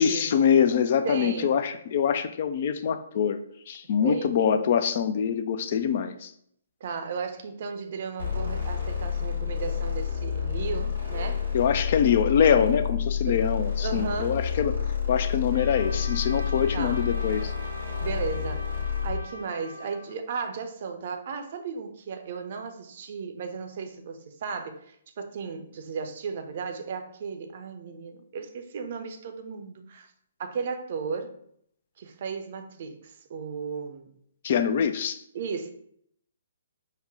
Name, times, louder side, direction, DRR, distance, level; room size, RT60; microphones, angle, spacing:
voice 1, 0.0-3.4 3.7-6.3 11.5-14.8 15.1-17.5 34.4-35.2, left 7 dB, 45° left, 0.3 m, -24 dB
voice 2, 1.0-1.5 4.0-4.4 6.8-11.4 13.3-13.4 13.8-14.4 16.7-17.0 18.0-30.1 30.4-31.4 32.0-34.1 35.3-35.7, right 5 dB, 45° right, 0.5 m, -35 dB
sound 1, 8.2-19.3, left 7 dB, 75° left, 1.4 m, -29 dB
Trumpet, 15.5-20.2, equal, 85° right, 0.7 m, -42 dB
5.5 x 2.1 x 3.5 m
figure-of-eight pair, 130°, 0 cm